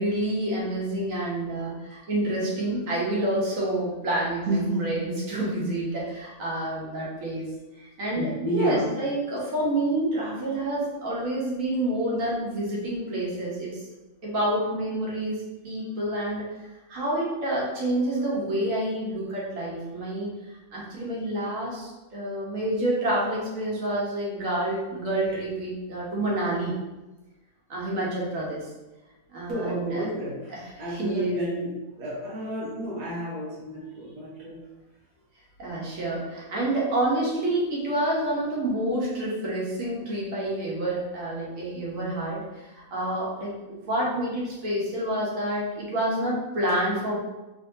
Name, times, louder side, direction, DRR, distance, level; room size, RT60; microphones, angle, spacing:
voice 1, 0.0-7.5 7.8-13.8 14.2-16.5 16.9-20.3 20.7-26.7 27.7-28.6 29.3-30.1 30.5-31.4 35.6-47.2, right 1 dB, 60° right, -5 dB, 1.4 m, -28 dB
voice 2, 4.5-4.9 8.1-8.9 29.5-30.5 30.8-31.7 32.0-34.6, right 1 dB, 85° right, -6 dB, 1.4 m, -30 dB
3.7 x 3.1 x 2.7 m, 1.1 s
omnidirectional pair, 1.6 m